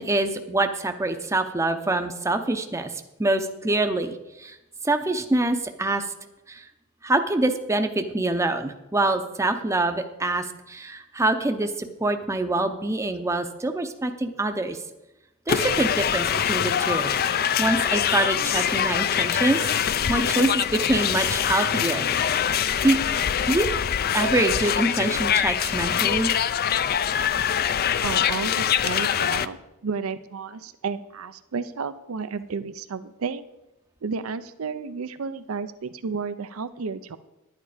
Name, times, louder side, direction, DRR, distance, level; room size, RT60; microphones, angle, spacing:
voice 1, 0.0-2.9 3.2-4.6 4.8-6.1 6.5-6.6 7.0-14.8 15.5-17.1 17.6-22.1 22.8-23.0 23.5-23.7 24.1-26.3, right 2 dB, 15° right, 6 dB, 0.6 m, -25 dB
sound 1, 15.5-29.5, left 9 dB, 45° left, 0.4 m, -24 dB
voice 2, 28.0-33.4 34.0-37.2, right 5 dB, 85° right, 12 dB, 0.6 m, -32 dB
11.0 x 9.3 x 4.9 m, 0.96 s
head